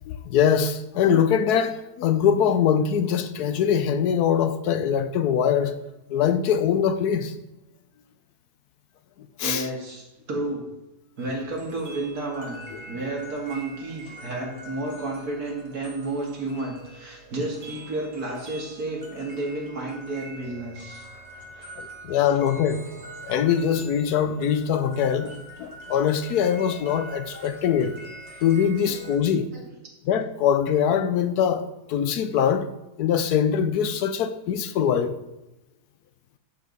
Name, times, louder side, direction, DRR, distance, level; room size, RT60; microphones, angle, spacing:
voice 1, 0.1-5.8 6.1-7.3 9.4-9.7 12.7-12.8 21.8-22.8 23.2-28.0 28.4-29.5 30.0-32.7 33.0-35.2, left 8 dB, 75° left, 1.1 m, -23 dB
voice 2, 9.4-10.6 11.2-21.7 29.5-29.7, right 2 dB, 60° right, 2.7 m, -32 dB
sound 1, 11.2-29.2, right 1 dB, 90° right, 2.6 m, -44 dB
11.0 x 7.0 x 4.1 m
omnidirectional pair, 1.8 m